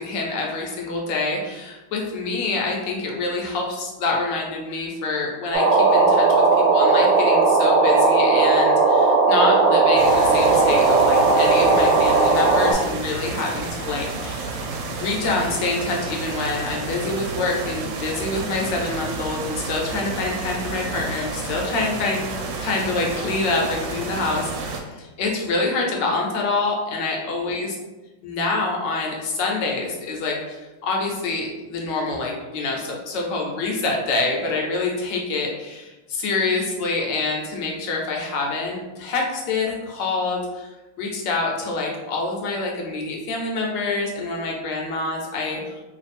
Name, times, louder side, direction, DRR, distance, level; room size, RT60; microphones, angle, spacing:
voice 1, 0.0-6.3 6.5-14.5 14.9-22.2 22.6-27.7 28.2-40.7 41.0-45.8, left 3 dB, 70° left, 0 dB, 1.3 m, -26 dB
sound 1, 5.5-12.7, right 3 dB, 70° right, 1.2 m, -17 dB
sound 2, 10.0-24.8, right 3 dB, 90° right, 1.4 m, -31 dB
3.3 x 2.4 x 4.1 m, 1.1 s
omnidirectional pair, 2.1 m